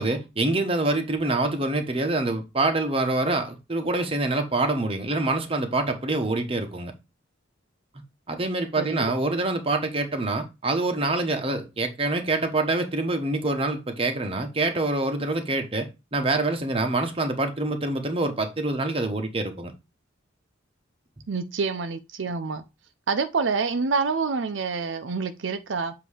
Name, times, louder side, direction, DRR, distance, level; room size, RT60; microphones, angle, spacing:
voice 1, 0.0-6.9 8.3-19.7, right 2 dB, 30° right, 1.1 m, -26 dB
voice 2, 8.8-9.1 21.3-22.6 23.1-25.9, right 4 dB, 75° right, 0.6 m, -27 dB
7.7 x 2.8 x 4.9 m
head